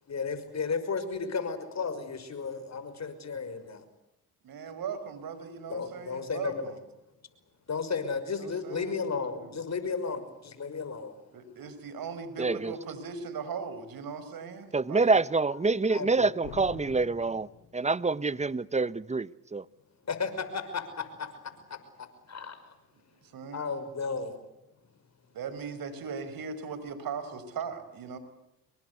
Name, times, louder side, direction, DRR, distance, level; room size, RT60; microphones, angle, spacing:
voice 1, 0.1-3.8 5.7-6.7 7.7-11.2 15.9-16.3 20.1-21.3 21.7-22.7 23.5-24.4, left 5 dB, 45° left, 5.9 m, -34 dB
voice 2, 4.4-6.8 8.4-9.6 11.3-15.1 23.2-23.8 25.3-28.2, right 5 dB, 60° right, 5.5 m, -39 dB
voice 3, 12.4-12.7 14.7-17.5 17.7-19.6, right 3 dB, 15° right, 1.0 m, -26 dB
sound 1, 16.4-18.2, left 9 dB, 85° left, 7.2 m, -46 dB
27.5 x 23.0 x 8.3 m
supercardioid pair, 65°, 38 cm